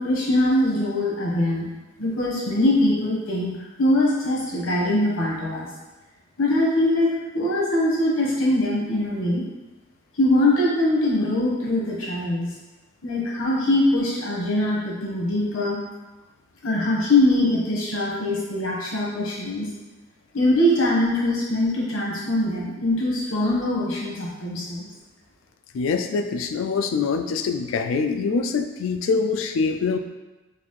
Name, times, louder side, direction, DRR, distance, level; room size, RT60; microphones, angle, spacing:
voice 1, 0.0-1.7 2.0-5.7 6.4-9.4 10.2-12.5 13.0-15.8 16.6-19.7 20.3-24.8, left 1 dB, 90° left, -5 dB, 1.2 m, -22 dB
voice 2, 25.7-30.0, left 4 dB, 75° left, 7 dB, 0.3 m, -24 dB
3.9 x 2.4 x 3.1 m, 1.1 s
head